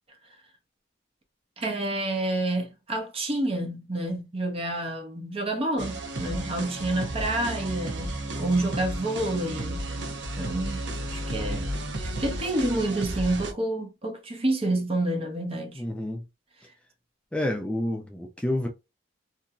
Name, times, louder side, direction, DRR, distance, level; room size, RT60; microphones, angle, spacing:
voice 1, 1.6-9.9 10.3-11.7 12.0-15.8, right 1 dB, 30° right, 0.7 m, -29 dB
sound 1, 5.8-13.5, right 1 dB, 70° right, 0.7 m, -33 dB
voice 2, 15.8-16.2 17.3-18.7, left 1 dB, 5° left, 0.3 m, -29 dB
2.8 x 2.6 x 2.2 m
head